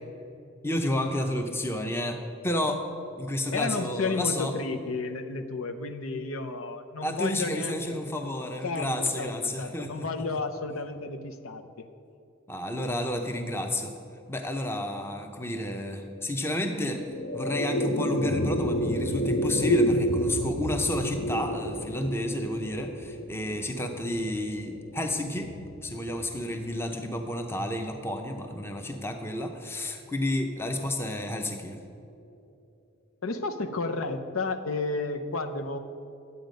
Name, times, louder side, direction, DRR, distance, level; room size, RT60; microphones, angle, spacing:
voice 1, 0.6-2.8 3.2-4.5 7.0-10.1 12.5-13.9 14.3-17.0 17.3-25.5 25.8-31.8, left 1 dB, 10° left, 5 dB, 0.6 m, -31 dB
voice 2, 3.5-8.1 8.6-11.9 33.2-35.8, left 3 dB, 85° left, 8 dB, 0.7 m, -32 dB
sound 1, 16.7-27.2, equal, 50° left, 0.5 m, -30 dB
11.0 x 8.1 x 5.2 m, 2.6 s
head